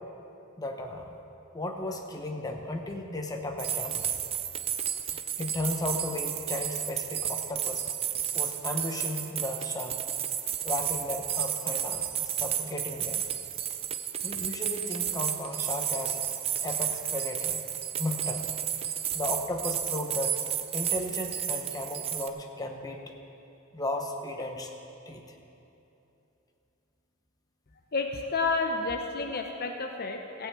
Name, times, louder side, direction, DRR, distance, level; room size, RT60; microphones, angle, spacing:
voice 1, 0.6-1.1 1.5-4.1 5.1-7.9 8.3-10.0 10.6-13.2 14.2-16.2 16.6-17.7 17.9-18.5 19.1-20.4 20.7-23.1 23.7-24.7 25.1-25.2, left 1 dB, 20° left, 2 dB, 1.0 m, -35 dB
sound 1, 3.6-22.3, right 9 dB, 30° right, 0.5 m, -32 dB
voice 2, 27.9-30.5, left 3 dB, 50° left, 4 dB, 0.7 m, -30 dB
15.5 x 5.7 x 8.2 m, 2.9 s
head